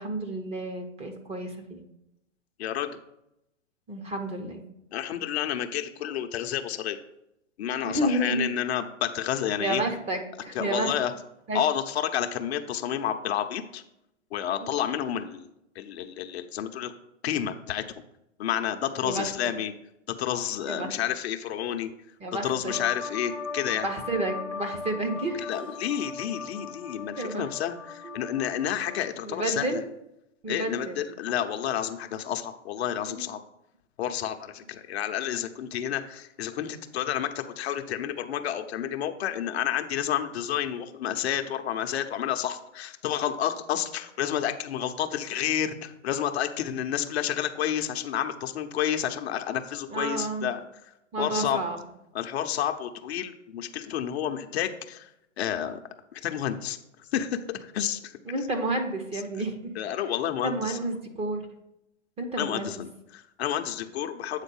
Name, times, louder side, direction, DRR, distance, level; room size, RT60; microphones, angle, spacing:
voice 1, 0.0-1.8 3.9-4.6 7.8-8.5 9.6-10.9 11.5-11.6 14.6-14.7 19.0-19.3 20.7-20.9 22.2-22.7 23.8-25.4 27.2-27.5 28.0-28.2 29.2-29.8 30.4-31.0 33.1-33.3 49.9-50.5 51.1-51.8 58.2-59.7 60.4-61.5 62.2-62.8, right 2 dB, 15° right, 3 dB, 0.9 m, -30 dB
voice 2, 2.6-3.0 4.9-7.0 7.6-9.8 10.5-11.1 11.5-13.8 14.3-15.5 15.8-16.9 17.2-17.8 18.4-19.7 20.1-21.9 22.4-23.9 25.4-29.8 30.5-33.4 34.0-50.6 51.2-51.6 52.1-55.1 55.4-55.8 56.1-56.8 57.1-58.1 59.8-60.8 62.4-64.4, left 10 dB, 55° left, 6 dB, 0.8 m, -30 dB
sound 1, 22.7-29.1, left 5 dB, 5° left, 0.4 m, -38 dB
8.2 x 3.9 x 5.4 m, 0.82 s
hypercardioid pair, 130°, 37 cm